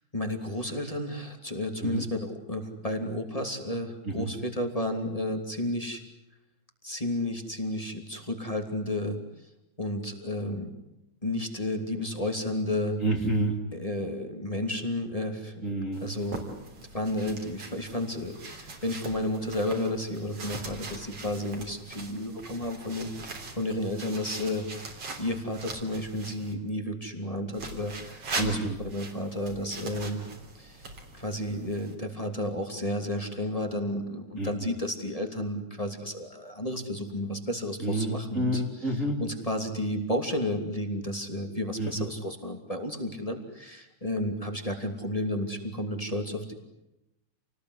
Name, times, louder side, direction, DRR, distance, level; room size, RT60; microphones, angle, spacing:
voice 1, 0.1-6.0 6.8-9.2 9.8-10.7 11.2-13.0 13.7-15.7 16.0-16.4 16.8-28.6 28.8-30.2 30.5-38.6 39.2-46.5, left 1 dB, 10° left, 4 dB, 2.7 m, -32 dB
voice 2, 13.0-13.6 15.6-16.0 28.4-28.8 34.4-34.7 37.8-39.2 41.8-42.1, right 1 dB, 25° right, 0 dB, 2.8 m, -29 dB
sound 1, 15.9-26.5 27.5-32.0, right 3 dB, 55° right, 4.5 m, -41 dB
28.5 x 20.0 x 9.9 m, 0.93 s
omnidirectional pair, 3.3 m